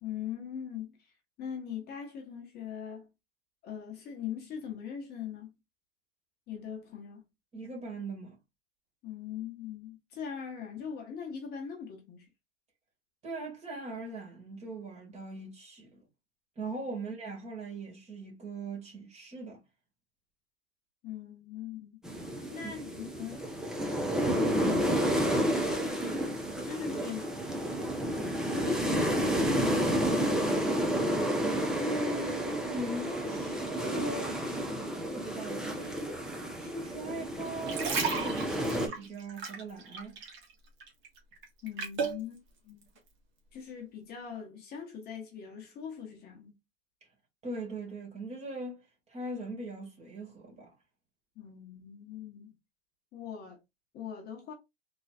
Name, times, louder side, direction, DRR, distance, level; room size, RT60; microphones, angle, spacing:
voice 1, 0.0-1.1 1.4-3.1 3.6-5.5 6.5-7.3 9.0-12.3 21.0-22.0 22.5-23.4 24.3-27.4 28.2-30.7 41.6-42.9 43.5-46.5 51.4-52.5 53.1-53.6 53.9-54.5, left 8 dB, 30° left, 1.1 m, -41 dB
voice 2, 7.5-8.4 13.2-16.0 16.6-19.6 22.6-22.7 31.7-34.7 35.1-36.1 36.6-40.2 47.4-50.7, right 2 dB, 20° right, 1.9 m, -40 dB
sound 1, 22.0-38.9, equal, ahead, 0.8 m, -30 dB
sound 2, 37.4-40.5 40.8-42.2 42.8-43.0, right 5 dB, 40° right, 1.5 m, -34 dB
4.0 x 3.0 x 2.4 m
hypercardioid pair, 110°, 31 cm